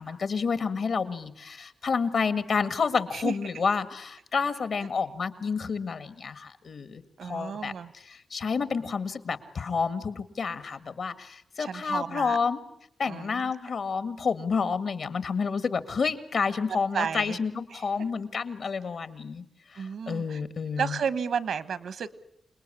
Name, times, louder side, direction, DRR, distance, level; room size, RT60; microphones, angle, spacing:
voice 1, 0.0-7.7 8.3-12.6 13.0-19.4 19.7-20.9, left 5 dB, 55° left, 13 dB, 1.8 m, -29 dB
voice 2, 3.1-3.5 7.2-7.9 11.6-12.4 13.0-13.5 16.7-17.4 17.7-17.9 19.8-20.4 20.8-22.1, right 7 dB, 85° right, 16 dB, 1.3 m, -32 dB
28.0 x 20.0 x 9.9 m, 0.73 s
wide cardioid pair, 165°, 0 cm